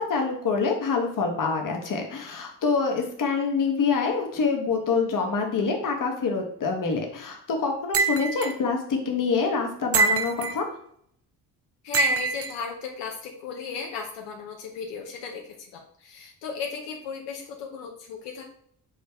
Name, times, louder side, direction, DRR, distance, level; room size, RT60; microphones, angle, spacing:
voice 1, 0.0-10.7, left 4 dB, 50° left, 2 dB, 1.2 m, -26 dB
sound 1, 7.9-8.5 9.9-10.6 11.9-12.5, right 4 dB, 35° right, 0.5 m, -24 dB
voice 2, 11.8-18.5, left 5 dB, 85° left, 1 dB, 0.8 m, -35 dB
6.3 x 2.1 x 3.4 m, 0.68 s
supercardioid pair, 70°, 42 cm